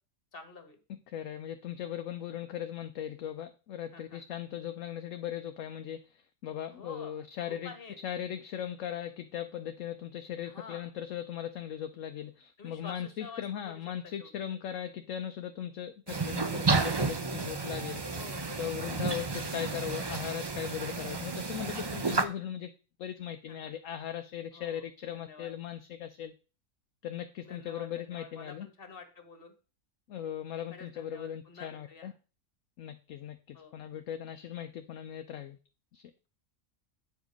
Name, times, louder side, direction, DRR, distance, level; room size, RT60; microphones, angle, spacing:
voice 1, 0.3-0.8 3.9-4.2 6.7-8.0 10.4-10.9 12.6-14.3 18.1-19.1 23.5-23.7 24.5-24.8 25.1-25.5 27.4-29.5 30.7-32.1 33.5-33.8, left 5 dB, 40° left, 6 dB, 1.7 m, -49 dB
voice 2, 0.9-7.7 8.0-18.0 18.6-22.7 23.0-26.3 27.0-28.7 30.1-32.1 32.8-35.6 35.9-36.0, left 10 dB, 70° left, 7 dB, 1.0 m, -38 dB
sound 1, 16.1-22.2, right 4 dB, 35° right, 0.4 m, -32 dB
9.2 x 5.0 x 5.2 m, 0.34 s
omnidirectional pair, 1.5 m